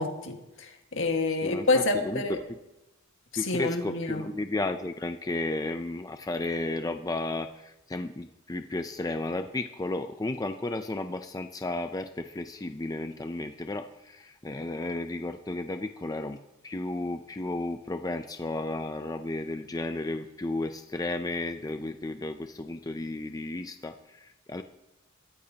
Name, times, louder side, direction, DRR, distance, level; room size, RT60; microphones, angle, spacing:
voice 1, 0.0-2.4 3.5-4.2, left 2 dB, 65° left, 4 dB, 1.8 m, -28 dB
voice 2, 1.4-2.6 3.4-16.4 16.6-24.6, left 2 dB, 20° left, 7 dB, 0.5 m, -33 dB
23.0 x 13.5 x 2.9 m, 0.95 s
head